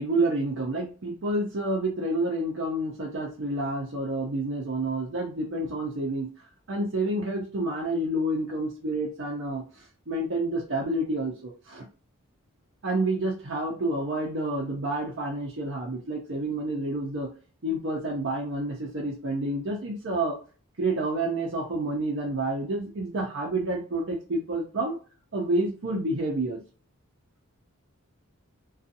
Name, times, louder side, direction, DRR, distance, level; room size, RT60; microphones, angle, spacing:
voice 1, 0.0-6.3 6.7-9.6 10.1-11.8 12.8-17.3 17.6-20.4 20.8-25.0 25.3-26.6, right 2 dB, 55° right, -2 dB, 0.6 m, -29 dB
2.6 x 2.3 x 2.6 m, 0.36 s
head